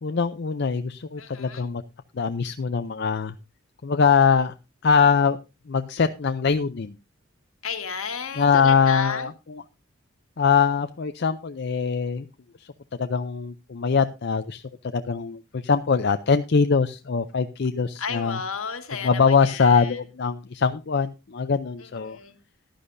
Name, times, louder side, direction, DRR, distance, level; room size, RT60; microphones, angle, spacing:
voice 1, 0.0-1.8 2.1-3.3 3.8-4.5 4.8-5.4 5.7-7.0 8.4-9.6 10.4-12.3 13.0-14.6 14.9-18.4 19.0-22.2, left 5 dB, 50° left, 9 dB, 0.5 m, -22 dB
voice 2, 1.2-1.7 7.6-9.3 18.0-20.0 21.8-22.4, left 6 dB, 70° left, 7 dB, 1.7 m, -33 dB
15.0 x 11.5 x 2.6 m, 0.28 s
head